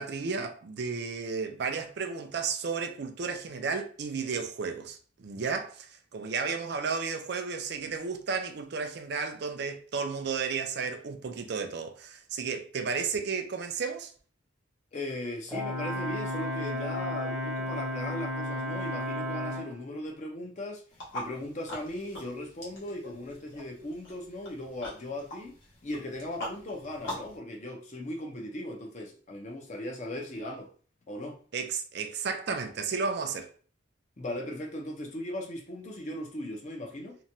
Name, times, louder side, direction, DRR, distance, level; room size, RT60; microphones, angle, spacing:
voice 1, 0.0-5.9 6.1-14.1 31.5-33.5, right 5 dB, 55° right, 0.4 m, -33 dB
voice 2, 14.9-20.8 21.1-25.5 25.8-30.7 31.1-31.4 34.2-37.2, left 1 dB, 35° left, 0.6 m, -38 dB
Brass instrument, 15.5-19.7, left 1 dB, 5° left, 0.8 m, -33 dB
sound 1, 20.9-27.4, equal, 75° left, 1.3 m, -43 dB
2.9 x 2.2 x 2.6 m
head